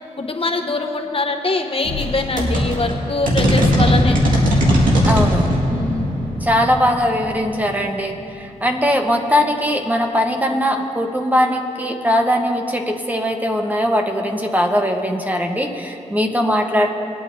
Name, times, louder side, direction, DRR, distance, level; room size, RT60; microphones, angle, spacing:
voice 1, 0.2-4.2 5.7-6.2, left 3 dB, 45° left, 4 dB, 1.0 m, -23 dB
sound 1, 1.8-8.3, equal, 85° right, 2.1 m, -19 dB
voice 2, 5.0-5.5 6.4-16.9, equal, 10° right, 3 dB, 1.2 m, -20 dB
21.0 x 9.1 x 2.8 m, 2.7 s
cardioid pair, 50°, 14 cm